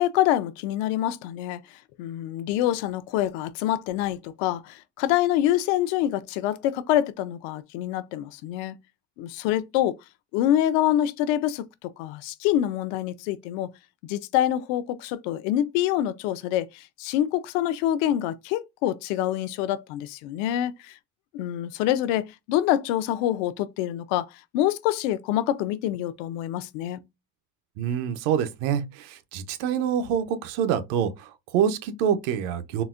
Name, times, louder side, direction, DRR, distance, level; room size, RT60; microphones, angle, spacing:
voice 1, 0.0-8.8 9.2-10.0 10.3-13.7 14.0-21.0 21.3-27.0, left 12 dB, 75° left, 0.5 m, -26 dB
voice 2, 27.8-32.8, right 8 dB, 75° right, 0.7 m, -26 dB
4.0 x 2.1 x 2.3 m
cardioid pair, 160°, 38 cm